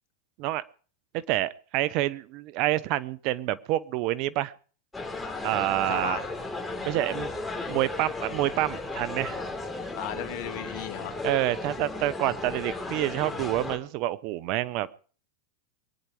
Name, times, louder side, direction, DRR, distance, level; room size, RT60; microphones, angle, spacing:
voice 1, 1.1-4.5 5.4-6.2 6.8-9.4 11.2-15.0, right 15 dB, 50° right, 19 dB, 0.9 m, -28 dB
sound 1, 4.9-13.8, left 3 dB, 10° left, 4.1 m, -35 dB
voice 2, 5.9-6.3 10.0-11.2, left 12 dB, 60° left, 10 dB, 2.0 m, -35 dB
23.0 x 9.8 x 4.9 m, 0.41 s
hypercardioid pair, 105°, 0 cm